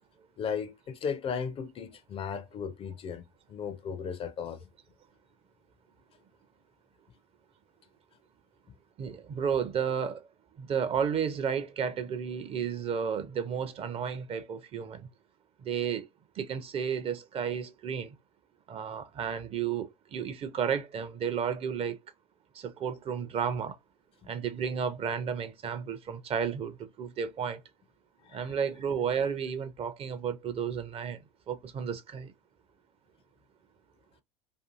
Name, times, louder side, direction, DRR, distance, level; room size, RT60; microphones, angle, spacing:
voice 1, 0.4-4.6 28.2-28.6, left 6 dB, 30° left, 0.4 m, -36 dB
voice 2, 9.0-10.3 10.6-15.1 15.6-16.1 16.4-18.2 18.7-22.0 22.5-23.8 24.3-27.6 28.3-31.2 31.5-32.3, right 7 dB, 30° right, 0.5 m, -32 dB
2.6 x 2.5 x 2.4 m
hypercardioid pair, 80°, 20 cm